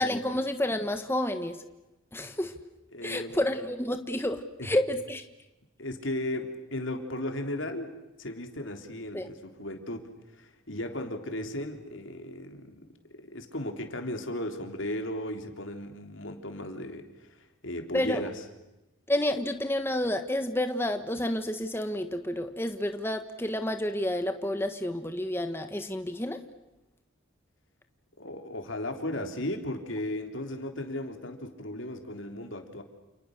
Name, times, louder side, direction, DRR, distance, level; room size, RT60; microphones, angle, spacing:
voice 1, 0.0-1.6 2.1-2.6 3.0-5.2 9.1-9.3 17.9-18.2 19.1-26.4, left 1 dB, 10° left, 7 dB, 1.3 m, -30 dB
voice 2, 2.9-3.4 4.6-4.7 5.8-7.9 8.2-12.9 13.2-17.4 17.6-18.4 28.2-32.8, left 1 dB, 70° left, 5 dB, 3.5 m, -36 dB
29.0 x 29.0 x 6.6 m, 0.99 s
head